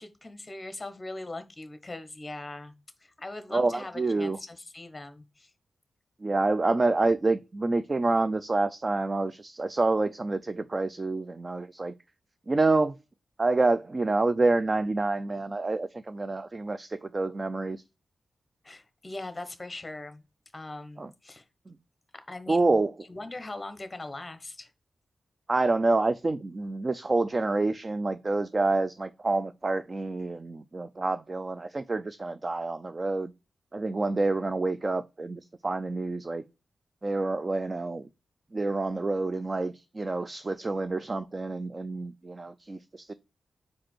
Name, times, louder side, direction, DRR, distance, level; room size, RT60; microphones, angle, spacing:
voice 1, 0.0-2.7 3.0-5.5 18.6-20.2 20.5-21.4 22.1-22.8 23.1-24.7, left 2 dB, 20° left, 1.1 m, -40 dB
voice 2, 3.5-4.4 6.2-11.9 12.5-13.0 13.4-17.8 21.0-21.1 21.7-21.8 22.5-22.9 25.5-33.3 33.7-36.4 37.0-38.1 38.5-43.1, right 3 dB, 30° right, 0.3 m, -27 dB
5.1 x 4.7 x 4.3 m
wide cardioid pair, 125°, 0 cm